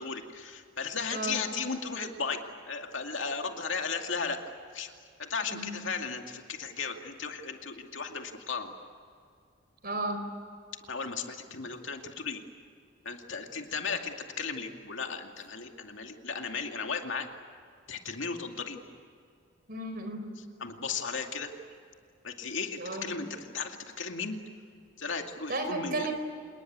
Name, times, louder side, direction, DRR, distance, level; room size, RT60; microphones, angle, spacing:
voice 1, 0.0-2.4 2.7-4.4 4.7-4.9 5.2-8.7 10.9-12.4 13.0-17.3 17.9-18.8 20.6-21.5 22.2-24.4 25.0-26.1, left 5 dB, 70° left, 4 dB, 2.4 m, -35 dB
voice 2, 9.8-10.2 19.7-20.2 22.8-23.1 25.5-26.1, right 2 dB, 45° right, 6 dB, 4.5 m, -33 dB
27.5 x 20.0 x 9.4 m, 2.3 s
head